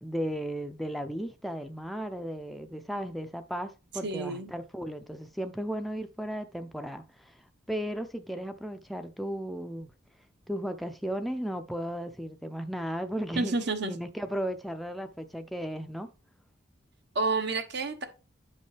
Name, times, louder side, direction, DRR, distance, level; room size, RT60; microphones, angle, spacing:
voice 1, 0.0-7.4 7.7-9.9 10.5-13.6 13.9-16.1, equal, ahead, 0.5 m, -35 dB
voice 2, 4.0-4.5 13.4-13.9 17.1-18.0, right 3 dB, 55° right, 1.1 m, -29 dB
9.8 x 5.4 x 3.3 m
head